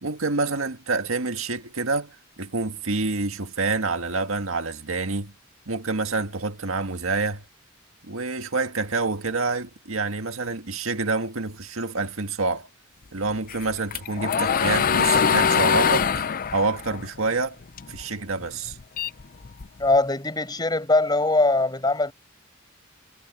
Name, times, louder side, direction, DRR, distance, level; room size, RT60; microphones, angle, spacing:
voice 1, 0.0-5.3 5.7-7.4 8.1-12.7 13.1-16.2 16.5-17.6 17.9-18.8, right 3 dB, 80° right, 1.8 m, -27 dB
sound 1, 13.5-18.0 18.4-19.9, left 6 dB, 45° left, 0.6 m, -23 dB
voice 2, 19.8-22.1, left 2 dB, 20° left, 6.2 m, -21 dB
head